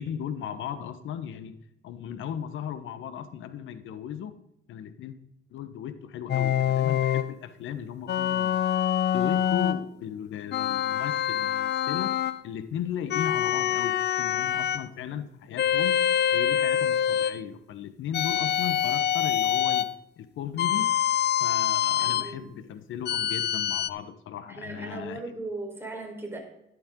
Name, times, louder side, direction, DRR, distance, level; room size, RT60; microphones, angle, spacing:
voice 1, 0.0-1.6 1.8-4.4 4.7-5.2 5.5-8.6 9.1-16.0 16.3-19.9 20.2-20.9 21.4-25.2, left 9 dB, 80° left, 11 dB, 1.2 m, -36 dB
sound 1, 6.3-7.3 8.1-9.8 10.5-12.4 13.1-14.9 15.6-17.4 18.1-19.9 20.6-22.3 23.1-23.9, left 10 dB, 55° left, 0.6 m, -25 dB
voice 2, 22.0-22.6 24.5-26.4, right 2 dB, 10° right, 0 dB, 4.3 m, -38 dB
12.5 x 11.5 x 3.8 m, 0.84 s
cardioid pair, 90°, 20 cm